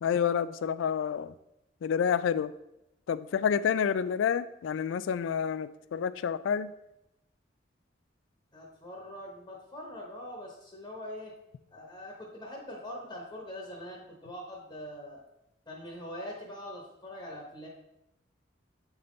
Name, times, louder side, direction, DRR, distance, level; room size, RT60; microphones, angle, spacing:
voice 1, 0.0-1.3 1.8-2.5 3.1-6.7, left 7 dB, 90° left, 15 dB, 0.3 m, -29 dB
voice 2, 8.5-11.3 11.7-15.2 15.7-17.7, left 1 dB, 20° left, -2 dB, 1.0 m, -43 dB
7.9 x 3.6 x 3.8 m, 0.87 s
head